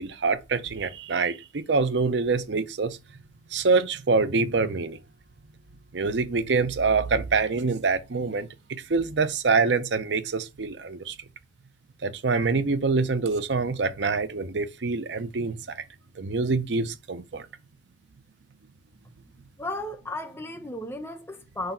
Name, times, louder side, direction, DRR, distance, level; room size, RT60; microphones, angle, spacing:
voice 1, 0.0-3.0 3.5-5.0 5.9-11.2 12.0-15.8 16.2-17.5, right 4 dB, 80° right, 0.6 m, -25 dB
voice 2, 19.6-21.7, left 1 dB, 15° left, 0.9 m, -34 dB
5.0 x 4.0 x 5.7 m
head